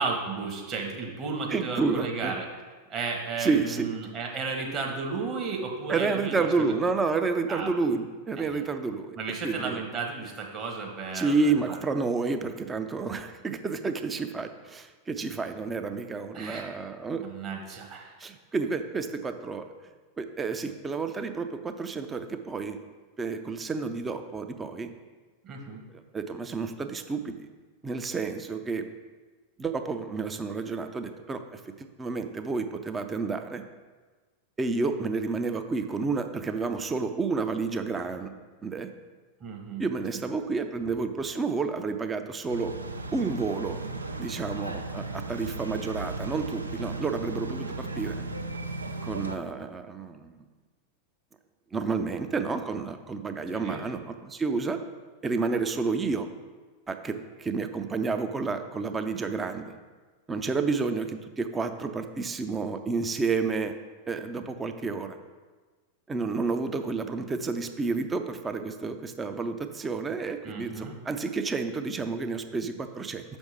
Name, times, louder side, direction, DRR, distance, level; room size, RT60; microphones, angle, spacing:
voice 1, 0.0-2.5 2.9-6.7 7.5-7.7 8.4-8.6 9.2-11.8 16.3-16.7 17.2-18.2 25.4-25.8 39.4-40.2 53.5-53.8 70.4-71.0, right 4 dB, 30° right, 1 dB, 1.4 m, -34 dB
voice 2, 1.5-2.4 3.4-3.9 5.9-9.2 9.4-9.8 11.1-17.3 18.2-19.6 20.2-22.8 23.2-24.9 26.1-27.5 27.8-28.9 29.6-33.6 34.6-38.3 38.6-38.9 39.8-42.7 43.1-43.8 44.2-48.2 49.0-50.4 51.7-54.8 55.2-56.3 56.9-59.7 60.3-63.8 64.1-65.2 66.1-73.2, right 4 dB, 15° right, 7 dB, 0.5 m, -30 dB
sound 1, 42.5-49.4, right 2 dB, 80° right, 0.5 m, -35 dB
6.3 x 5.3 x 4.9 m, 1.4 s
figure-of-eight pair, 90°, 0 cm